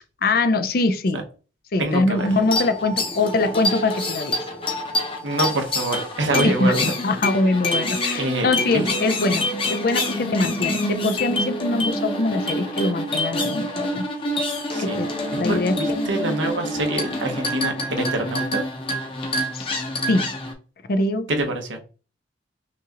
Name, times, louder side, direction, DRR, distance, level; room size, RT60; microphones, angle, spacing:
voice 1, 0.2-1.2 1.7-4.4 6.4-9.4 9.7-14.0 14.8-15.1 15.4-15.7 19.5-19.7 20.1-20.3 20.9-21.3, left 2 dB, 50° left, 0.5 m, -23 dB
voice 2, 1.8-2.3 5.2-6.9 8.2-8.9 10.4-10.5 14.7-15.0 15.5-18.7 21.3-21.8, right 2 dB, 80° right, 1.1 m, -25 dB
sound 1, 2.2-20.5, left 1 dB, 30° left, 0.8 m, -26 dB
5.8 x 2.4 x 2.9 m
head